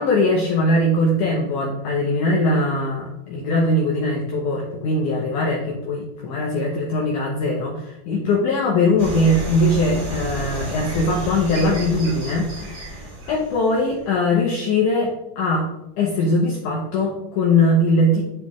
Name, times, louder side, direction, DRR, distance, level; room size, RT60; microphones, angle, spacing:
voice 1, 0.0-15.7 16.0-18.2, left 1 dB, 70° left, -2 dB, 2.0 m, -21 dB
sound 1, 9.0-14.1, right 1 dB, 35° right, 1.8 m, -32 dB
11.0 x 4.3 x 3.1 m, 0.88 s
omnidirectional pair, 4.5 m